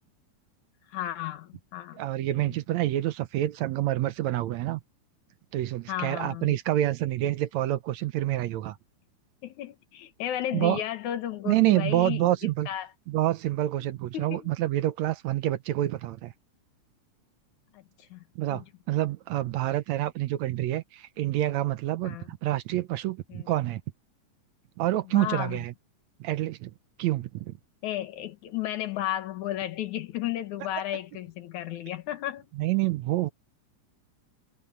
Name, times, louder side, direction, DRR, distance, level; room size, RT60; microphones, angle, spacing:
voice 1, 0.9-2.6 5.9-6.6 9.4-12.9 13.8-13.9 14.1-14.5 17.7-18.2 18.5-18.6 22.0-22.3 23.3-23.5 25.0-25.6 27.8-32.5, left 12 dB, 80° left, 2.7 m, -34 dB
voice 2, 2.0-4.8 5.5-8.8 10.5-10.8 11.5-12.7 13.1-16.3 18.4-23.8 24.8-25.7 26.2-26.7 27.0-27.5 32.6-33.3, right 15 dB, 75° right, 2.0 m, -27 dB
omnidirectional pair, 3.4 m